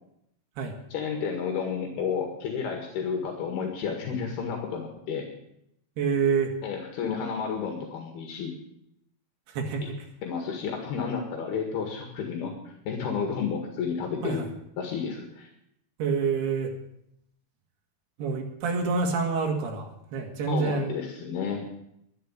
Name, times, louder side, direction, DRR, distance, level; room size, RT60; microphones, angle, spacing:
voice 1, 0.9-5.3 6.6-8.6 10.2-14.4 14.8-15.5 20.5-21.7, left 6 dB, 75° left, 3 dB, 3.7 m, -31 dB
voice 2, 6.0-6.5 9.5-9.8 14.2-14.5 16.0-16.7 18.2-20.9, right 5 dB, 75° right, 2 dB, 4.2 m, -27 dB
11.5 x 11.0 x 8.6 m, 0.77 s
omnidirectional pair, 4.8 m